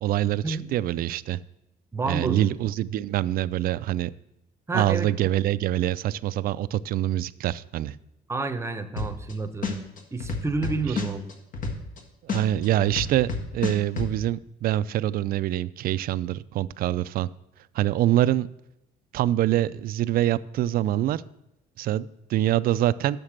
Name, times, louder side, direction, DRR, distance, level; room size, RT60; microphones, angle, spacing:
voice 1, 0.0-1.4 2.0-4.1 4.7-8.0 10.9-11.0 12.2-17.3 17.7-18.5 19.1-21.2 21.8-23.2, right 13 dB, 60° right, 16 dB, 0.4 m, -25 dB
voice 2, 1.9-2.5 4.7-5.3 8.3-9.8 10.1-11.3, right 3 dB, 15° right, 10 dB, 0.8 m, -29 dB
sound 1, 9.0-9.3 9.6-12.0 12.3-14.1, left 4 dB, 55° left, 1.6 m, -29 dB
6.7 x 6.5 x 7.4 m, 0.87 s
cardioid pair, 110°, 17 cm